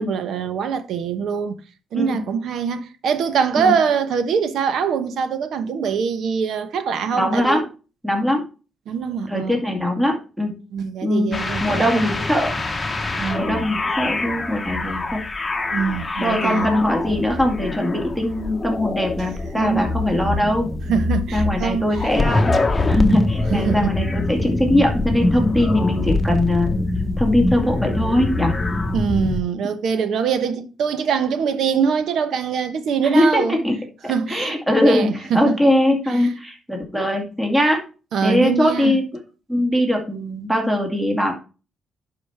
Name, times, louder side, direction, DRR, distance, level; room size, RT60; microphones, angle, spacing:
voice 1, 0.0-1.6 1.9-7.6 8.9-9.5 10.7-11.9 13.2-13.7 15.7-16.7 19.6-19.9 20.9-21.9 23.5-24.1 28.9-33.6 34.1-34.6 34.8-35.6 36.2-36.3 38.1-39.0, right 6 dB, 70° right, 1.0 m, -23 dB
voice 2, 1.9-2.2 3.6-3.7 7.1-7.7 8.0-8.4 9.3-10.5 11.0-12.5 13.4-15.2 16.2-20.7 21.3-26.8 27.2-28.6 33.0-33.8 34.0-37.8 38.2-39.0 39.5-41.3, left 1 dB, 5° right, 2.3 m, -21 dB
sound 1, 11.3-29.4, left 2 dB, 20° left, 1.2 m, -24 dB
11.0 x 5.1 x 3.5 m
cardioid pair, 90°, 0 cm